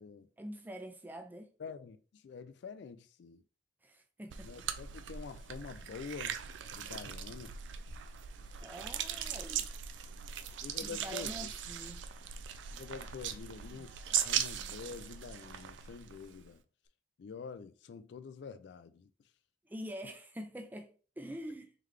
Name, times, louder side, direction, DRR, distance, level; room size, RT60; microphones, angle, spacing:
voice 1, 0.4-1.5 3.8-4.5 8.6-9.7 10.8-12.1 19.6-21.7, equal, 10° right, 0.4 m, -45 dB
voice 2, 1.6-3.4 4.4-6.4 6.7-7.6 10.4-11.5 12.7-14.0 14.2-16.6 17.2-19.1, left 5 dB, 65° left, 0.3 m, -47 dB
sound 1, 4.3-16.5, right 9 dB, 75° right, 0.4 m, -39 dB
3.8 x 3.2 x 3.2 m
head